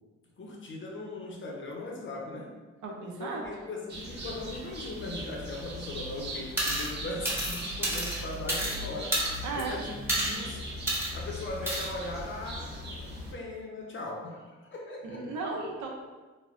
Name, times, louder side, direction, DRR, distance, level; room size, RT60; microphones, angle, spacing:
voice 1, 0.4-2.6 3.2-10.7 11.1-15.2, left 2 dB, 40° left, 0 dB, 0.6 m, -39 dB
voice 2, 2.8-3.4 9.4-9.8 15.0-15.9, right 3 dB, 75° right, 0 dB, 0.7 m, -35 dB
sound 1, 3.9-13.3, equal, 35° right, 0.8 m, -40 dB
sound 2, 6.6-6.9 7.2-8.8 9.1-9.6 10.1-10.4 10.9-11.1 11.7-11.9, right 1 dB, 10° right, 0.9 m, -30 dB
3.2 x 2.1 x 2.5 m, 1.3 s
cardioid pair, 90°, 30 cm